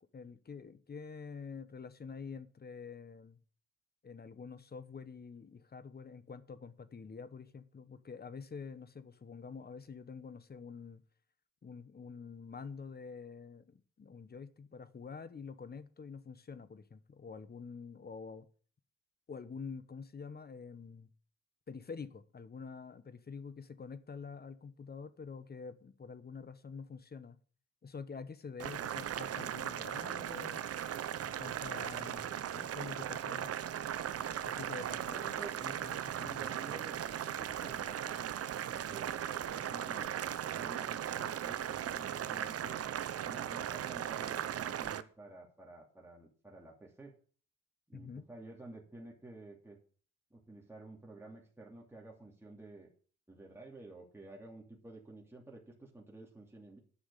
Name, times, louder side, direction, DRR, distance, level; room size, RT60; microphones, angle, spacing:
voice 1, 0.0-3.4 4.0-11.0 11.6-18.4 19.3-21.1 21.7-27.4 27.8-30.7 31.3-33.5 34.4-35.2 35.6-36.5 47.9-48.3, left 5 dB, 30° left, 1.2 m, -47 dB
Boiling, 28.6-45.0, right 10 dB, 55° right, 0.8 m, -38 dB
voice 2, 35.0-35.6 36.2-38.4 38.7-40.1 40.4-42.8 43.2-47.1 47.9-49.8 50.3-52.9 53.3-56.8, right 2 dB, 10° right, 2.8 m, -51 dB
9.8 x 6.3 x 8.3 m
cardioid pair, 90°, 30 cm